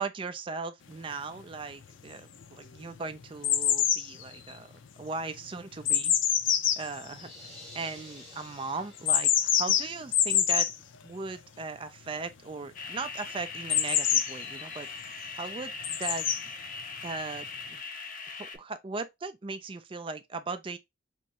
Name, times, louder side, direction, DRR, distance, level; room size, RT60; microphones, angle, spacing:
voice 1, 0.0-4.7 5.0-6.1 6.8-7.3 7.7-10.7 11.0-16.4 17.0-17.8 18.3-20.8, right 4 dB, 25° right, 0.4 m, -38 dB
sound 1, 1.1-1.2 1.8-2.4 2.7-8.0 9.0-10.8 13.7-14.8 15.8-16.4 17.4-17.5, left 9 dB, 85° left, 0.6 m, -26 dB
sound 2, 7.1-9.6, equal, ahead, 1.2 m, -51 dB
sound 3, 12.7-18.6, left 4 dB, 45° left, 0.6 m, -41 dB
3.5 x 3.1 x 2.8 m
head